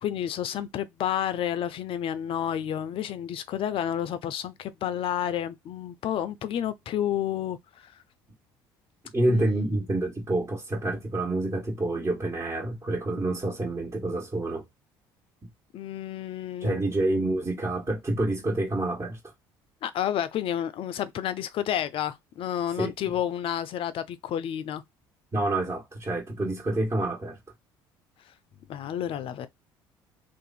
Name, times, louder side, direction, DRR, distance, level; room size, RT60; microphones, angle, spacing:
voice 1, 0.0-7.9 9.3-9.5 15.7-16.9 19.8-24.8 28.7-29.5, left 10 dB, 55° left, 0.5 m, -30 dB
voice 2, 9.1-14.6 16.6-19.2 22.8-22.9 25.3-27.4, right 2 dB, 25° right, 1.4 m, -27 dB
2.7 x 2.5 x 4.1 m
hypercardioid pair, 60°, 11 cm